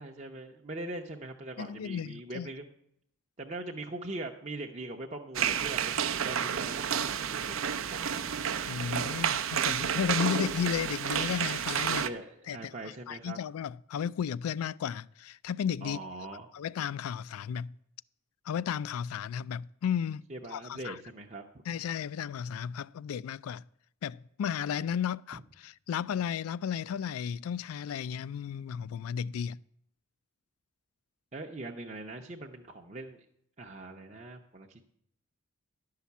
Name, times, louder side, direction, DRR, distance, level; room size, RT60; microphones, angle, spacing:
voice 1, 0.0-2.6 3.4-8.2 11.9-13.4 15.8-16.5 20.3-21.4 31.3-33.2 33.6-34.9, right 2 dB, 30° right, 0.7 m, -42 dB
voice 2, 1.6-2.5 8.7-12.0 12.5-16.0 16.5-17.7 18.5-20.2 20.5-21.0 21.7-23.6 24.0-29.6, left 8 dB, 85° left, 0.3 m, -34 dB
sound 1, 5.4-12.1, right 8 dB, 65° right, 0.6 m, -30 dB
11.5 x 5.7 x 8.3 m
head